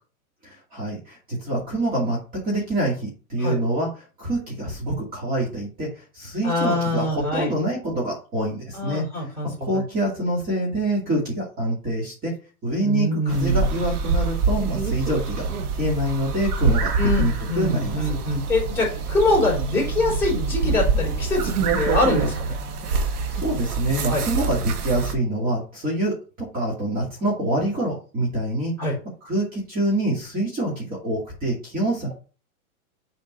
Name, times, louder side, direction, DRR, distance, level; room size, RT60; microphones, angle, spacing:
voice 1, 0.4-9.1 9.4-12.3 12.6-15.5 15.8-18.2 20.6-20.7 22.8-28.9 29.2-32.1, right 1 dB, 20° right, -4 dB, 2.4 m, -26 dB
voice 2, 6.4-7.5 8.7-9.5 9.7-9.8 12.8-13.7 17.0-22.6 24.1-24.2 28.8-28.9, left 2 dB, 5° left, -5 dB, 4.0 m, -24 dB
sound 1, 13.3-25.1, right 4 dB, 85° right, 1.8 m, -25 dB
7.3 x 4.4 x 5.3 m, 0.36 s
supercardioid pair, 155°, 43 cm